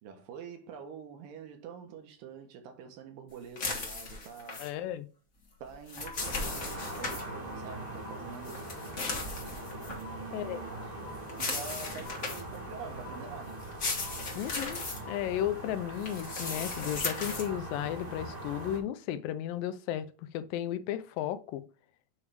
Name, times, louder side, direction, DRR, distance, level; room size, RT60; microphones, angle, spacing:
voice 1, 0.0-4.7 5.6-8.6 9.9-10.9 11.4-13.7, right 6 dB, 80° right, 2.9 m, -46 dB
sound 1, 3.6-4.7 5.7-7.2 8.4-10.0 11.3-12.6 13.6-15.0 16.0-17.5, left 3 dB, 45° left, 1.0 m, -36 dB
voice 2, 4.6-5.1 10.3-10.6 14.4-14.8 15.1-20.1 20.3-21.6, left 11 dB, 90° left, 2.4 m, -34 dB
sound 2, 6.1-6.2 7.1-7.2 8.1-8.2 9.1-9.2 10.1-10.2 11.1-11.2 12.1-12.2 13.1-13.2 14.1-14.2 15.1-15.2, left 4 dB, 70° left, 1.4 m, -46 dB
sound 3, 6.2-18.8, right 1 dB, 25° right, 0.8 m, -42 dB
8.5 x 3.3 x 4.8 m
omnidirectional pair, 3.9 m